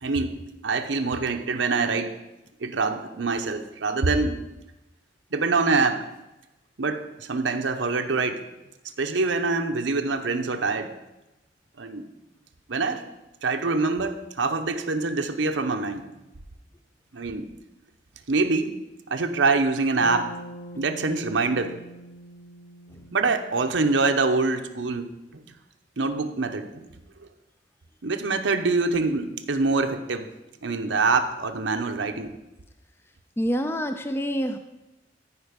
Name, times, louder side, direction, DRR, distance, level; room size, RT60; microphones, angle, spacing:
voice 1, 0.0-2.2 2.6-4.4 5.3-6.1 6.8-8.5 9.0-10.9 11.8-12.1 12.7-13.1 13.4-16.1 17.1-17.5 18.3-18.8 19.1-20.3 20.8-21.7 23.1-25.4 26.0-26.9 28.0-30.3 30.6-32.4, right 3 dB, 85° right, 6 dB, 0.8 m, -25 dB
Bass guitar, 20.0-24.4, equal, 30° left, 0.9 m, -43 dB
voice 2, 33.4-34.6, equal, 15° left, 8 dB, 0.4 m, -27 dB
14.0 x 5.1 x 5.2 m, 0.98 s
head